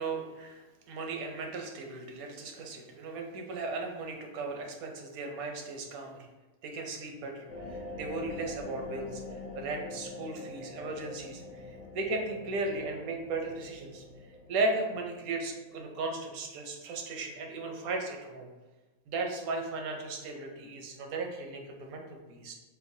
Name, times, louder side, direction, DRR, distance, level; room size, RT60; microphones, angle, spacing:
voice 1, 0.0-6.2 6.6-7.5 8.0-9.2 9.5-14.0 14.5-18.5 19.1-22.5, right 3 dB, 85° right, 2 dB, 1.1 m, -36 dB
sound 1, 7.5-16.4, left 2 dB, 50° left, 0.5 m, -44 dB
4.5 x 2.2 x 2.6 m, 1.2 s
omnidirectional pair, 1.5 m